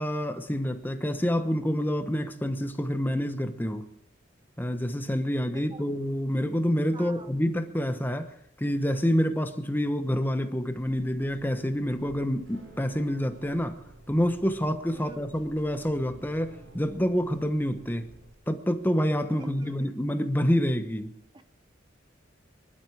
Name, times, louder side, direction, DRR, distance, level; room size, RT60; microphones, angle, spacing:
voice 1, 0.0-3.8 4.6-13.8 14.1-18.1 18.5-21.1, equal, 10° left, 8 dB, 1.0 m, -27 dB
voice 2, 5.5-5.9 6.9-7.4 14.9-15.2 19.3-19.9 21.3-21.4, right 3 dB, 25° right, 9 dB, 0.7 m, -45 dB
sound 1, 10.7-18.3, right 1 dB, 85° right, 4.8 m, -52 dB
24.0 x 11.5 x 4.8 m, 0.77 s
head